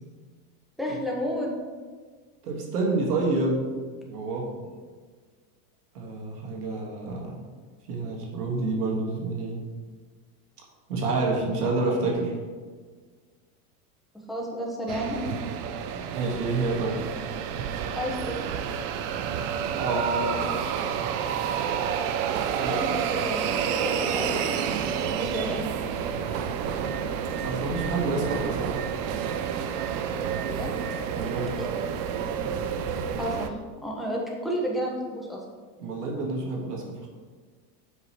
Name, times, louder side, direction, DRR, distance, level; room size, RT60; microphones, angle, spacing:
voice 1, 0.8-1.5 14.3-15.2 17.9-18.5 22.7-24.6 25.1-25.7 30.4-30.7 31.6-31.7 33.2-35.4, equal, ahead, -3 dB, 1.1 m, -31 dB
voice 2, 2.4-3.6 4.1-4.5 5.9-7.4 7.9-9.6 10.9-12.3 16.1-17.0 19.7-20.8 22.5-22.8 27.4-28.7 31.1-31.5 35.8-37.1, right 3 dB, 90° right, -1 dB, 1.8 m, -28 dB
sound 1, 14.9-33.5, right 8 dB, 40° right, 0.5 m, -29 dB
7.8 x 5.7 x 3.1 m, 1.5 s
supercardioid pair, 135°, 45 cm